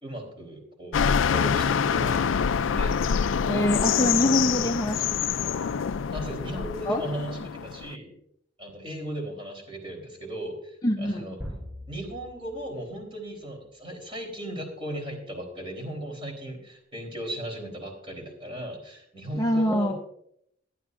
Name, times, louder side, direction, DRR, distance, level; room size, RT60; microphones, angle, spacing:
voice 1, 0.0-3.0 6.1-8.2 8.6-11.4 11.9-19.9, right 1 dB, 25° right, 2 dB, 3.7 m, -37 dB
sound 1, 0.9-8.0, left 7 dB, 80° left, 0.4 m, -26 dB
voice 2, 3.5-5.5 6.9-7.0 10.8-11.3 19.3-19.9, equal, 20° left, 3 dB, 0.7 m, -25 dB
sound 2, 11.4-13.4, equal, 10° right, 5.5 m, -41 dB
20.5 x 11.5 x 2.5 m, 0.70 s
head